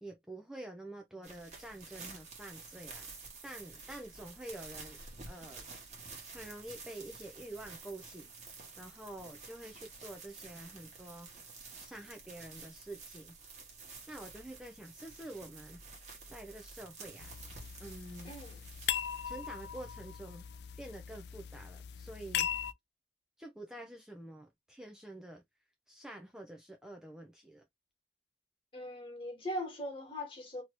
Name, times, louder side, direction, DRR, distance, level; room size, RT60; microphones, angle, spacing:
voice 1, 0.0-3.1 3.4-5.0 5.3-5.7 6.3-8.3 8.8-11.5 11.8-13.3 14.1-15.8 16.3-17.3 17.8-18.3 19.2-20.4 20.8-22.5 23.4-25.4 25.9-27.6, right 1 dB, 5° right, 0.4 m, -48 dB
sound 1, 1.2-21.0, right 4 dB, 40° right, 1.2 m, -51 dB
sound 2, 17.2-22.7, left 10 dB, 70° left, 0.3 m, -39 dB
voice 2, 18.2-18.6 28.7-30.6, left 1 dB, 30° left, 1.4 m, -40 dB
3.0 x 2.6 x 3.0 m
head